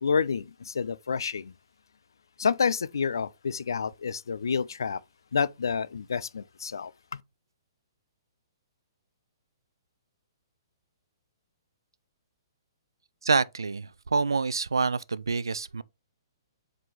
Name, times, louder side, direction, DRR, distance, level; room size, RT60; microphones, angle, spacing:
voice 1, 0.0-1.5 2.4-5.0 5.3-7.2, left 6 dB, 70° left, 0.4 m, -29 dB
voice 2, 13.2-15.8, right 4 dB, 75° right, 0.4 m, -27 dB
7.3 x 4.0 x 3.2 m
figure-of-eight pair, 120°, 2 cm